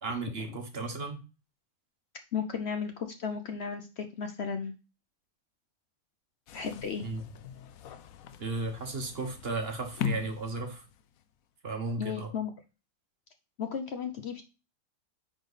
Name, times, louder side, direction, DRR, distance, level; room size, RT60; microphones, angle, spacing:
voice 1, 0.0-1.2 7.0-7.2 8.4-10.8 11.6-12.3, right 3 dB, 45° right, 5 dB, 1.2 m, -35 dB
voice 2, 2.3-4.7 6.5-7.1 12.0-12.5 13.6-14.4, left 6 dB, 55° left, 7 dB, 0.8 m, -34 dB
sound 1, 6.5-11.2, left 7 dB, 75° left, 1.0 m, -40 dB
9.9 x 3.8 x 4.0 m, 0.32 s
omnidirectional pair, 1.5 m